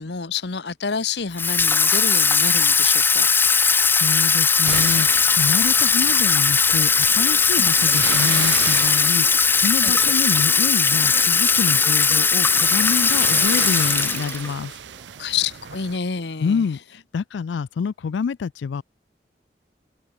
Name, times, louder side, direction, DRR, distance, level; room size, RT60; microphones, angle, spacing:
voice 1, 0.0-3.3 7.6-7.7 9.8-9.9 15.2-16.7, left 5 dB, 70° left, 1.0 m, -28 dB
sound 1, 1.3-16.6, right 1 dB, 15° right, 6.8 m, -58 dB
Water tap faucet / Sink (filling or washing), 1.4-14.5, left 5 dB, 10° left, 0.3 m, -18 dB
voice 2, 3.5-14.8 16.4-18.8, left 6 dB, 85° left, 0.4 m, -27 dB
sound 2, 4.7-16.0, right 8 dB, 80° right, 0.6 m, -34 dB
open air
head